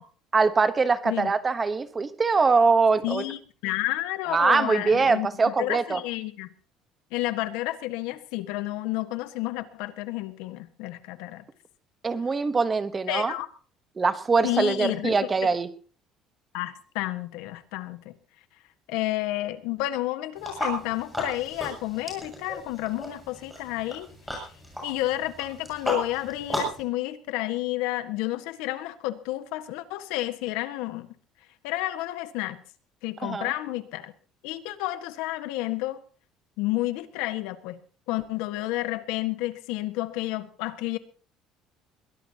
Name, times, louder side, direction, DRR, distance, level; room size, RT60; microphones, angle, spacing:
voice 1, 0.3-3.2 4.3-6.0 12.0-13.3 14.0-15.7 33.2-33.5, right 4 dB, 20° right, 12 dB, 1.1 m, -23 dB
voice 2, 3.0-6.5 7.1-11.4 13.1-13.5 14.4-15.1 16.5-18.1 18.9-24.5 24.8-31.1 31.6-32.6 33.0-34.1 34.4-36.0 36.6-37.8 38.1-41.0, left 17 dB, 90° left, 10 dB, 1.5 m, -31 dB
sound 1, 20.4-26.8, equal, ahead, 7.3 m, -35 dB
22.0 x 17.5 x 2.9 m, 0.38 s
cardioid pair, 170°, 0 cm